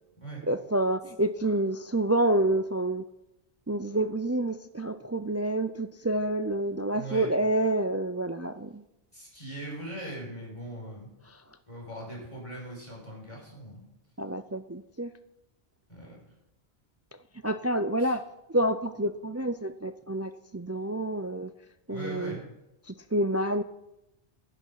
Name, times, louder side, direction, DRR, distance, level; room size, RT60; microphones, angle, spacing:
voice 1, 0.5-3.0 3.7-8.8 14.2-15.1 17.4-18.2 18.5-21.5 21.9-22.4 22.9-23.6, right 1 dB, 25° right, 10 dB, 0.3 m, -28 dB
voice 2, 6.9-7.3 9.1-11.1 11.7-13.8 15.9-16.2 18.0-18.1 21.9-22.4, right 1 dB, 30° left, -3 dB, 5.5 m, -40 dB
15.5 x 11.0 x 5.8 m, 0.91 s
omnidirectional pair, 1.0 m